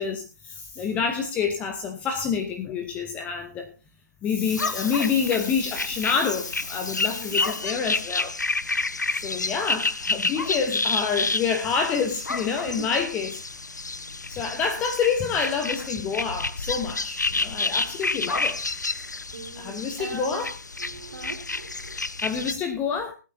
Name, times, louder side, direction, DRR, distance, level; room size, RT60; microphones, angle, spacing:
voice 1, 0.0-3.7 4.2-8.3 9.2-13.3 14.3-18.6 19.6-20.5 22.2-23.1, left 6 dB, 15° left, 6 dB, 1.0 m, -27 dB
voice 2, 0.9-1.3 7.0-7.5 12.6-12.9 14.0-14.1 17.3-17.9 18.3-18.4 19.3-20.4 20.8-22.0, right 3 dB, 50° right, -5 dB, 3.4 m, -41 dB
sound 1, 4.5-22.5, left 3 dB, 75° left, 0.6 m, -30 dB
24.5 x 9.1 x 2.7 m, 0.30 s
figure-of-eight pair, 130°, 10 cm